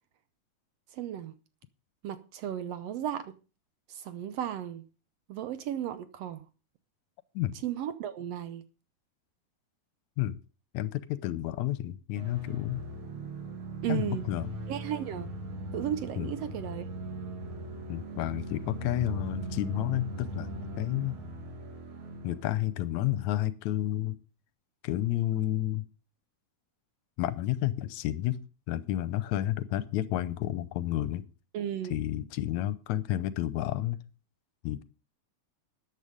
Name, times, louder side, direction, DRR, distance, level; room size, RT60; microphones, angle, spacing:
voice 1, 0.9-1.3 2.0-3.3 3.9-4.8 5.3-6.5 7.6-8.6 13.8-14.2 14.7-15.3 15.7-16.9 31.5-32.0, right 10 dB, 70° right, 1.6 m, -34 dB
voice 2, 10.7-12.8 13.9-14.5 16.2-16.3 17.9-21.2 22.2-24.2 24.8-25.8 27.2-28.4 28.7-31.3 31.9-34.0 34.6-34.8, left 13 dB, 80° left, 2.0 m, -31 dB
sound 1, 12.1-22.9, right 2 dB, 50° right, 2.3 m, -40 dB
13.5 x 9.3 x 5.1 m
omnidirectional pair, 3.4 m